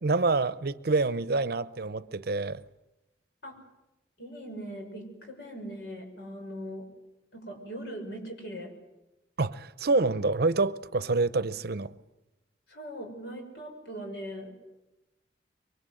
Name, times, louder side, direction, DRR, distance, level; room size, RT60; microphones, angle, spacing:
voice 1, 0.0-2.6 9.4-11.9, right 3 dB, 60° right, 0.8 m, -27 dB
voice 2, 4.2-6.9 7.3-8.7 12.7-14.6, equal, 70° left, 6.1 m, -40 dB
24.5 x 23.5 x 7.8 m
head